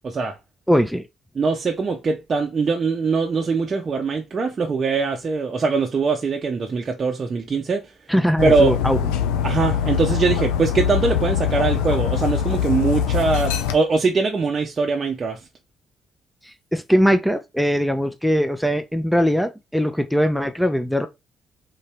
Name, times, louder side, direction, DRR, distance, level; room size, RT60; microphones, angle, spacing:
voice 1, 0.0-0.4 1.3-7.9 8.4-8.7 9.4-15.4, right 4 dB, 45° right, 0.6 m, -22 dB
voice 2, 0.7-1.0 8.1-9.0 16.7-21.1, equal, ahead, 0.6 m, -20 dB
Dog, 8.4-13.8, left 8 dB, 85° left, 0.4 m, -23 dB
3.9 x 2.7 x 3.3 m
hypercardioid pair, 50°, 0 cm